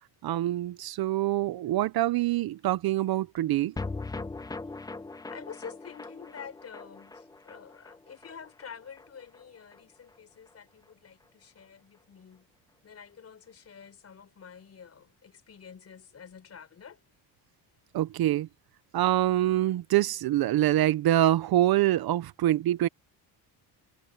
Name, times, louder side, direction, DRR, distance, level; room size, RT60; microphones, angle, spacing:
voice 1, 0.2-3.7 17.9-18.5 18.9-22.9, right 14 dB, 60° right, 0.7 m, -25 dB
sound 1, 3.8-10.2 10.5-10.6 10.8-10.9, left 3 dB, 10° left, 0.7 m, -41 dB
voice 2, 5.3-12.5 12.8-17.0, left 7 dB, 35° left, 5.8 m, -48 dB
cardioid pair, 160°, 42 cm